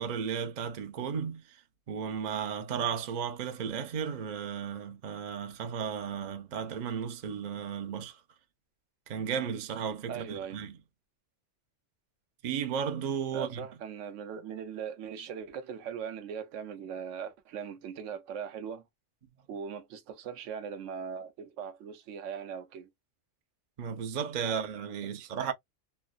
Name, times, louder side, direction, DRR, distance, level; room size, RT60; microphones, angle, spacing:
voice 1, 0.0-1.6 1.9-8.2 9.1-10.7 12.4-13.6 23.8-25.5, right 7 dB, 50° right, 0.5 m, -34 dB
voice 2, 10.1-10.6 13.3-18.8 19.5-22.9 24.5-24.6 25.2-25.3, right 7 dB, 90° right, 1.0 m, -40 dB
3.1 x 2.0 x 2.3 m
omnidirectional pair, 1.2 m